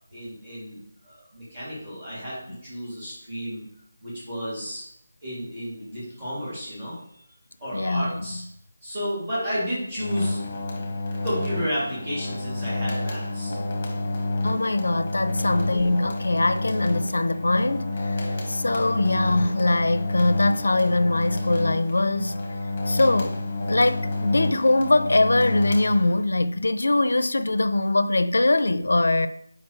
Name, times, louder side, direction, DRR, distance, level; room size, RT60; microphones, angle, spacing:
voice 1, 0.1-0.8 1.0-3.6 4.0-4.8 5.2-7.2 7.6-8.4 8.8-10.4 11.2-13.5 15.4-15.6, equal, 20° right, 2.4 m, -32 dB
voice 2, 7.7-8.2 14.4-22.4 22.9-23.4 23.7-29.3, left 2 dB, 90° left, 0.4 m, -22 dB
sound 1, 10.0-26.4, left 2 dB, 15° left, 0.9 m, -29 dB
7.5 x 4.9 x 3.1 m
figure-of-eight pair, 180°, 0 cm